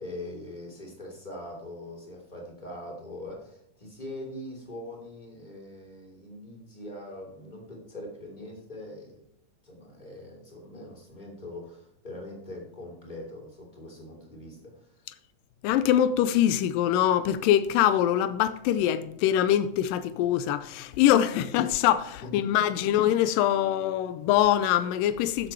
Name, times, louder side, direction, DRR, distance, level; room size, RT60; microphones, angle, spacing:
voice 1, 0.0-9.2 9.6-14.9 22.2-22.3 23.0-23.1, left 1 dB, 15° left, 2.9 m, -42 dB
voice 2, 15.6-25.5, left 11 dB, 85° left, 2.3 m, -23 dB
14.0 x 7.8 x 4.6 m
omnidirectional pair, 3.9 m